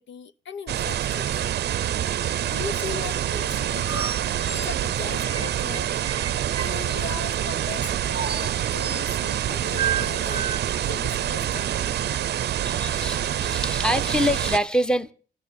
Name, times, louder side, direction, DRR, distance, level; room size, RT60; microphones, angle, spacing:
voice 1, 0.0-1.5 2.4-6.0 6.6-10.5 10.8-11.7, left 5 dB, 65° left, 1.1 m, -38 dB
sound 1, 0.7-14.6, right 11 dB, 55° right, 0.6 m, -26 dB
sound 2, 3.7-7.0 8.1-9.1 9.8-10.6, right 7 dB, 30° right, 0.8 m, -32 dB
voice 2, 12.6-15.1, equal, 5° left, 1.2 m, -25 dB
12.5 x 12.5 x 8.1 m
cardioid pair, 90°, 20 cm